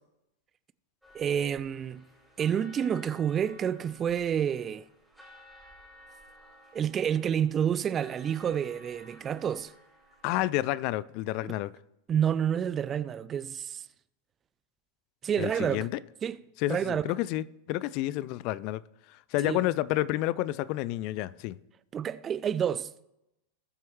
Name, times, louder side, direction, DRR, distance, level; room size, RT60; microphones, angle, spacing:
sound 1, 1.0-10.5, equal, ahead, 3.7 m, -55 dB
voice 1, 1.1-2.1 2.4-4.9 6.7-9.7 11.4-11.5 12.1-13.8 15.2-15.9 16.2-16.4 16.7-17.1 19.4-19.6 21.9-23.0, right 8 dB, 25° right, 0.4 m, -29 dB
voice 2, 10.2-11.7 15.4-15.9 16.6-18.8 19.3-21.6, left 16 dB, 45° left, 0.4 m, -30 dB
19.5 x 7.5 x 3.1 m
figure-of-eight pair, 90°, 0 cm